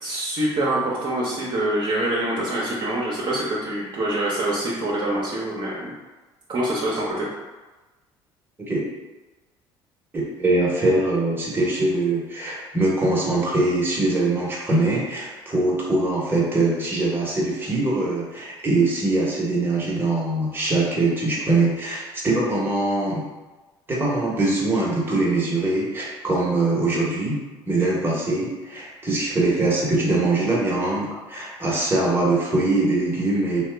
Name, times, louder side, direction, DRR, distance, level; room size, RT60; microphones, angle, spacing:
voice 1, 0.0-5.9 6.5-7.3, right 1 dB, 45° right, -5 dB, 0.8 m, -25 dB
voice 2, 10.1-23.3 23.9-27.4 27.7-33.6, right 2 dB, 20° right, -5 dB, 1.1 m, -22 dB
2.8 x 2.3 x 3.3 m, 1.2 s
supercardioid pair, 80°, 11 cm